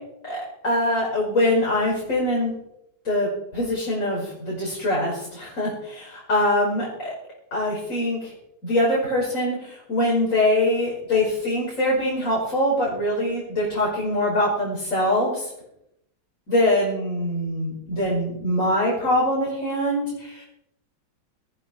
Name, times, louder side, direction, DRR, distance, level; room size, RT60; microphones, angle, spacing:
voice 1, 0.2-2.5 3.0-7.1 7.5-8.3 8.6-15.5 16.5-20.4, left 1 dB, 40° left, -6 dB, 6.0 m, -23 dB
18.0 x 16.5 x 4.5 m, 0.80 s
omnidirectional pair, 2.1 m